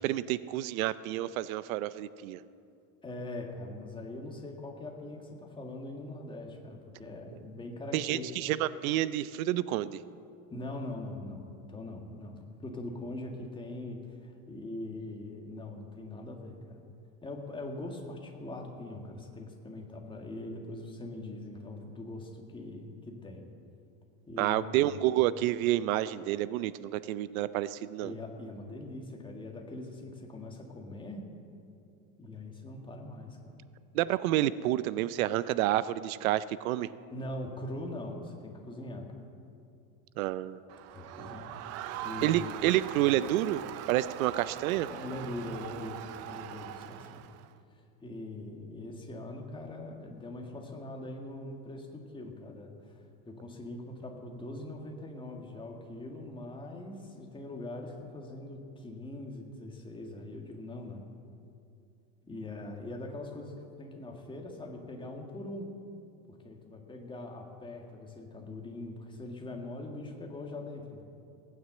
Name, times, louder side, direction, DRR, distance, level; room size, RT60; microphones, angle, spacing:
voice 1, 0.0-2.4 7.9-10.0 24.4-28.1 33.9-36.9 40.2-40.6 42.2-43.6 43.9-44.9, right 14 dB, 90° right, 16 dB, 0.7 m, -29 dB
voice 2, 3.0-8.3 10.5-11.4 11.7-16.9 17.2-23.5 24.3-25.1 28.0-31.3 32.2-33.6 37.1-39.3 40.9-41.6 42.0-42.6 44.9-47.2 47.7-61.0 62.3-65.7 66.3-71.0, left 2 dB, 10° left, 1 dB, 1.8 m, -42 dB
Crowd, 40.7-47.5, right 11 dB, 40° right, 0.6 m, -42 dB
17.5 x 9.5 x 7.7 m, 2.5 s
supercardioid pair, 150°, 40 cm